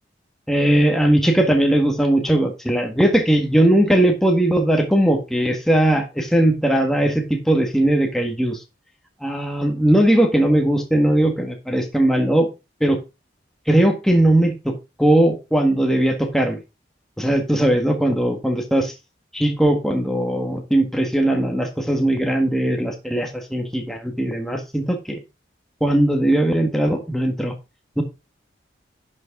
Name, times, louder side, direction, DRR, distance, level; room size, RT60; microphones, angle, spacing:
voice 1, 0.5-8.6 9.2-12.5 12.8-13.0 13.7-16.6 17.2-18.9 19.3-25.2 25.8-27.5 28.0-28.1, right 1 dB, ahead, 3 dB, 1.6 m, -19 dB
10.5 x 6.4 x 3.8 m, 0.26 s
head